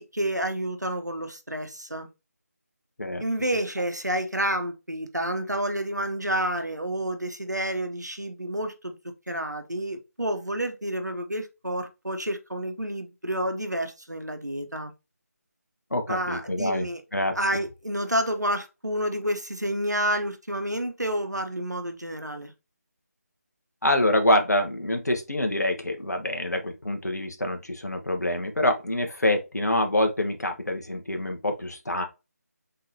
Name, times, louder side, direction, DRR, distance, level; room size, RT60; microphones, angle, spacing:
voice 1, 0.0-2.1 3.2-9.0 9.3-14.9 16.1-17.0 17.3-22.5, right 1 dB, 90° right, 1.0 m, -29 dB
voice 2, 15.9-16.9 17.1-17.3 23.8-32.0, left 1 dB, 75° left, 1.0 m, -26 dB
3.9 x 3.8 x 2.8 m
figure-of-eight pair, 160°, 9 cm